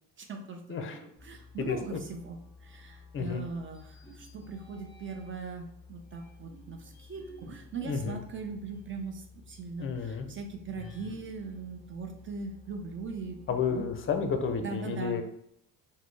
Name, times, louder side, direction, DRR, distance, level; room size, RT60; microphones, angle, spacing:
voice 1, 0.2-9.2 9.5-13.4 13.7-13.9 14.6-15.2, right 4 dB, 35° right, 4 dB, 0.6 m, -40 dB
voice 2, 0.7-1.0 1.7-2.0 3.1-3.5 7.8-8.2 9.8-10.3 13.5-15.2, left 6 dB, 35° left, 6 dB, 0.5 m, -31 dB
sound 1, 1.1-14.6, left 4 dB, 15° right, 1.1 m, -54 dB
sound 2, 3.7-5.5 6.1-9.1 9.5-9.6 10.7-12.7, left 1 dB, 5° left, 1.0 m, -54 dB
4.0 x 2.1 x 3.2 m, 0.74 s
cardioid pair, 90°, 36 cm